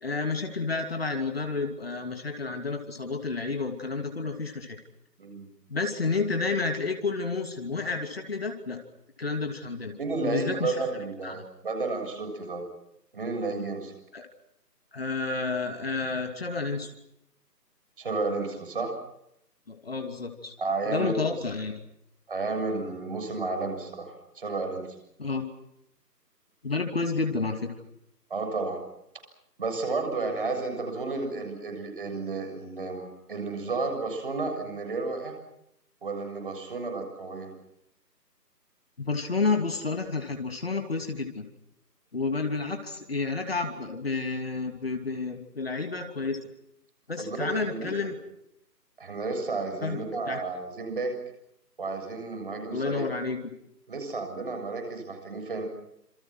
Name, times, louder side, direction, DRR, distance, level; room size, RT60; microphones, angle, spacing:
voice 1, 0.0-4.8 5.7-8.8 9.2-10.8 11.2-11.4 14.1-14.3 14.9-16.9 19.7-20.5 20.9-21.8 25.2-25.5 26.6-27.7 39.0-41.5 42.1-46.4 47.1-48.2 49.8-50.4 52.7-53.5, left 4 dB, 35° left, 5 dB, 2.9 m, -30 dB
voice 2, 10.0-12.6 13.1-13.9 18.0-18.9 20.6-21.4 22.3-24.9 28.3-28.8 29.6-35.3 36.0-37.5 47.2-47.9 49.0-51.1 51.8-53.1 53.9-55.6, right 3 dB, 30° right, 4 dB, 7.1 m, -32 dB
28.5 x 27.5 x 6.1 m, 0.78 s
figure-of-eight pair, 160°, 50 cm